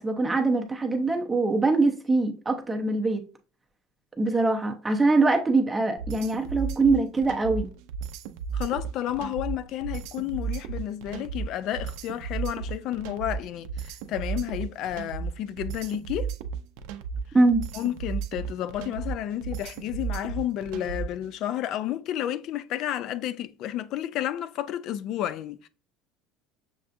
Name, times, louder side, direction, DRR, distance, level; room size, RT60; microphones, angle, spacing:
voice 1, 0.0-3.2 4.2-7.7 17.3-17.6, right 3 dB, 10° right, 0.6 m, -23 dB
sound 1, 6.0-21.2, right 6 dB, 70° right, 0.5 m, -34 dB
voice 2, 8.5-16.3 17.7-25.7, left 12 dB, 45° left, 0.3 m, -31 dB
6.5 x 2.3 x 2.5 m
cardioid pair, 155°, 0 cm